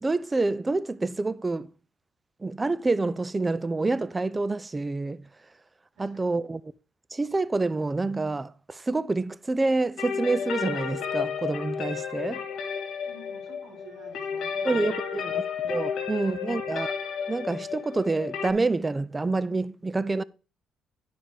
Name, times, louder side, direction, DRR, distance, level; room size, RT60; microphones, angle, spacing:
voice 1, 0.0-1.7 2.4-5.3 6.0-6.7 7.1-12.4 14.6-15.3 15.6-16.9 17.3-20.2, right 3 dB, 20° right, 0.5 m, -27 dB
sound 1, 10.0-18.5, left 7 dB, 70° left, 1.7 m, -32 dB
voice 2, 13.1-15.4 15.9-16.6, right 4 dB, 75° right, 3.8 m, -49 dB
10.0 x 5.1 x 4.8 m
cardioid pair, 80°, 0 cm